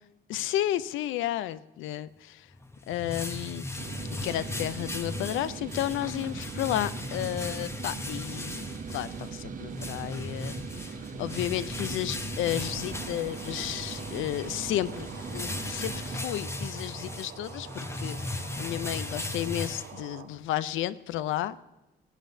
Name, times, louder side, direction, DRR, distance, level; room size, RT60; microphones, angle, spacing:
voice 1, 0.3-2.5 2.9-3.7 4.2-8.6 8.9-10.9 11.2-21.6, left 13 dB, 85° left, 16 dB, 0.5 m, -32 dB
sound 1, 2.5-20.4, left 2 dB, 15° left, 0.8 m, -37 dB
sound 2, 3.8-16.2, right 7 dB, 40° right, 0.5 m, -41 dB
sound 3, 12.4-20.3, right 8 dB, 75° right, 1.0 m, -46 dB
19.0 x 8.4 x 2.7 m, 1.0 s
cardioid pair, 90°, 20 cm